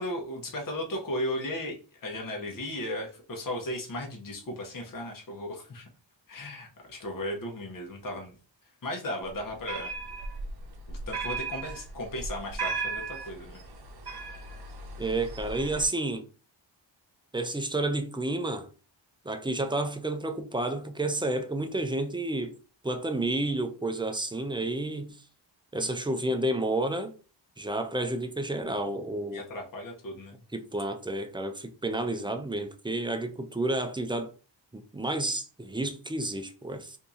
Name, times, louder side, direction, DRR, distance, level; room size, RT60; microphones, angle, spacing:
voice 1, 0.0-5.9 6.3-8.3 8.8-9.9 10.9-13.6 25.8-26.0 29.3-30.4 32.1-32.2, left 1 dB, 45° left, 1.0 m, -36 dB
sound 1, 9.3-15.9, right 4 dB, 55° right, 0.8 m, -37 dB
voice 2, 15.0-16.2 17.3-18.7 19.3-22.5 22.8-25.2 25.7-27.2 27.6-29.4 30.5-34.3 34.7-37.0, right 2 dB, 10° right, 0.4 m, -30 dB
2.8 x 2.7 x 3.6 m
wide cardioid pair, 100°, 45 cm